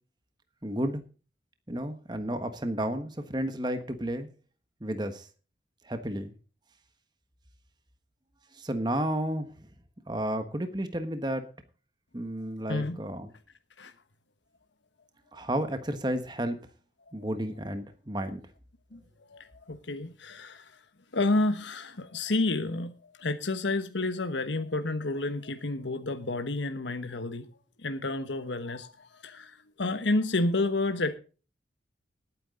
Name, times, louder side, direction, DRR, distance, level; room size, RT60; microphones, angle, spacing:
voice 1, 0.6-1.0 1.7-4.3 4.8-5.3 5.8-6.3 8.5-9.7 10.1-11.5 12.1-13.3 15.3-16.6 17.1-18.4, right 1 dB, 25° right, 8 dB, 1.3 m, -32 dB
voice 2, 12.7-13.0 13.8-13.9 18.9-19.0 19.3-20.8 21.1-27.5 27.8-31.2, left 2 dB, 75° left, 8 dB, 1.2 m, -30 dB
19.0 x 9.3 x 3.8 m, 0.35 s
head